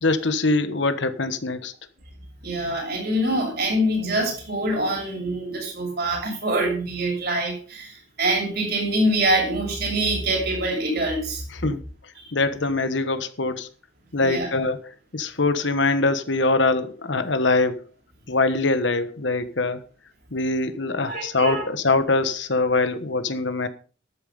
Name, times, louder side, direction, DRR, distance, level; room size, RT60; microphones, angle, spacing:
voice 1, 0.0-1.7 11.6-11.8 12.3-13.7 14.1-17.8 18.3-19.8 20.3-23.7, left 3 dB, 70° left, 1.3 m, -23 dB
voice 2, 2.4-11.5 12.2-12.3 14.2-14.5 21.1-21.6, right 1 dB, 55° right, 6.9 m, -25 dB
12.5 x 9.0 x 5.4 m
head